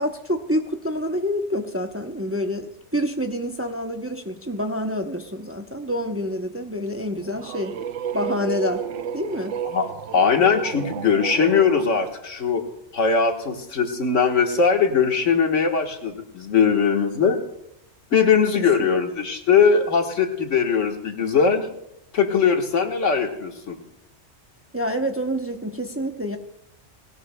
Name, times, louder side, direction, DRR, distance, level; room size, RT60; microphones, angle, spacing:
voice 1, 0.0-7.8 8.1-8.8 9.1-9.5 18.5-18.6 24.7-26.4, equal, 15° right, 4 dB, 0.7 m, -27 dB
sound 1, 7.0-11.9, right 8 dB, 85° right, 1.0 m, -32 dB
voice 2, 10.1-12.6 12.9-17.4 18.1-21.6 22.1-23.8, left 6 dB, 85° left, 4 dB, 1.8 m, -20 dB
19.5 x 17.0 x 2.2 m, 0.79 s
omnidirectional pair, 1.2 m